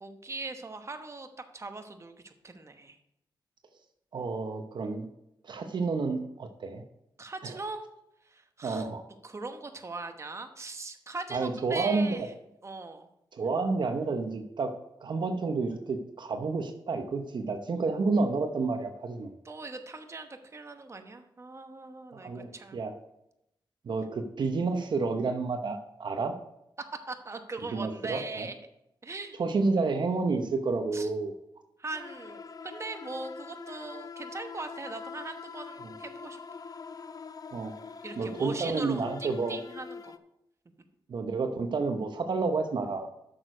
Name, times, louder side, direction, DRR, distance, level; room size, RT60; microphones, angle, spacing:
voice 1, 0.0-1.3 1.5-3.0 7.2-7.8 8.2-8.9 9.2-12.3 12.6-13.1 19.4-22.8 26.8-28.5 29.0-29.3 30.9-31.1 31.8-36.4 38.0-40.2, right 3 dB, 35° right, 6 dB, 1.0 m, -40 dB
voice 2, 4.1-5.1 5.4-6.8 7.4-7.6 8.6-9.0 11.3-12.2 13.3-14.7 15.0-19.3 22.1-22.9 23.8-26.4 27.7-28.5 29.4-31.4 37.5-37.7 38.2-39.6 41.1-43.1, right 4 dB, 65° right, 6 dB, 0.9 m, -30 dB
sound 1, 31.9-40.2, left 5 dB, 45° left, 0.5 m, -44 dB
8.7 x 6.5 x 5.0 m, 0.82 s
cardioid pair, 70°, 8 cm